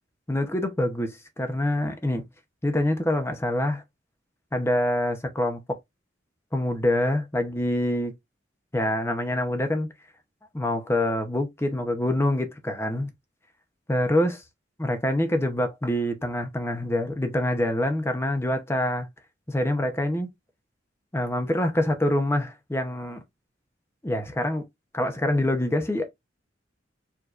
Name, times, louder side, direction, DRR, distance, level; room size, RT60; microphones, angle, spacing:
voice 1, 0.3-2.2 2.6-3.8 4.5-5.8 6.5-8.1 8.7-9.9 10.5-13.1 13.9-14.4 14.8-19.1 19.5-20.3 21.1-23.2 24.0-24.6 24.9-26.1, left 1 dB, 15° left, 0.7 m, -25 dB
4.7 x 2.8 x 2.4 m
head